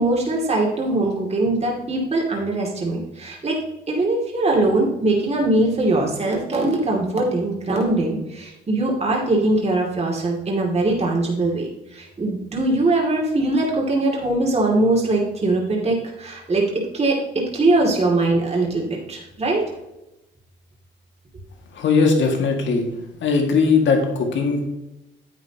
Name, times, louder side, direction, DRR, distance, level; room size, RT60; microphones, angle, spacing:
voice 1, 0.0-3.6 3.9-16.6 16.9-17.2 17.5-19.6, right 2 dB, 30° right, -2 dB, 2.4 m, -21 dB
voice 2, 21.7-22.9 23.2-24.7, left 4 dB, 70° left, 3 dB, 2.0 m, -19 dB
10.0 x 8.1 x 2.9 m, 0.93 s
cardioid pair, 90°, 20 cm